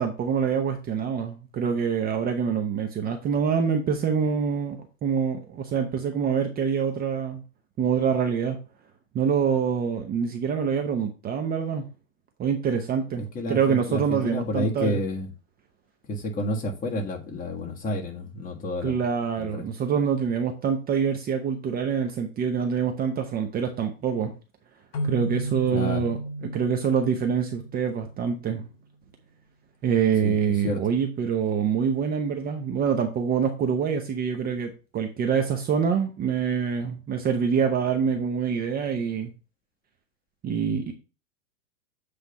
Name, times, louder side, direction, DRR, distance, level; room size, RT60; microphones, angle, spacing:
voice 1, 0.0-4.8 5.0-7.4 7.8-8.6 9.1-11.8 12.4-15.0 18.8-24.3 25.0-26.2 26.4-28.6 29.8-39.3 40.4-40.9, right 7 dB, 25° right, 5 dB, 0.7 m, -25 dB
voice 2, 13.3-15.3 16.1-19.0 19.4-19.6 25.7-26.0 30.2-30.8, left 1 dB, 20° left, 1 dB, 1.7 m, -30 dB
sound 1, 24.9-28.5, right 1 dB, 60° left, 1.9 m, -34 dB
8.1 x 3.4 x 5.4 m, 0.33 s
hypercardioid pair, 125°, 38 cm